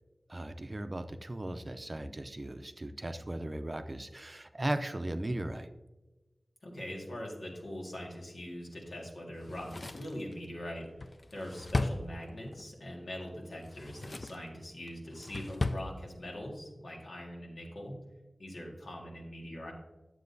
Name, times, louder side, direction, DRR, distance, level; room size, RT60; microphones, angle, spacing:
voice 1, 0.3-5.7, right 1 dB, 35° right, 8 dB, 0.5 m, -37 dB
voice 2, 6.6-10.9 11.3-18.0 18.4-19.7, equal, 90° left, -2 dB, 1.8 m, -42 dB
Drawer open or close, 9.4-12.7 13.5-14.5 14.9-15.9 16.2-16.3, left 2 dB, 50° left, 0.4 m, -36 dB
9.7 x 7.5 x 2.7 m, 1.1 s
wide cardioid pair, 65°, 0 cm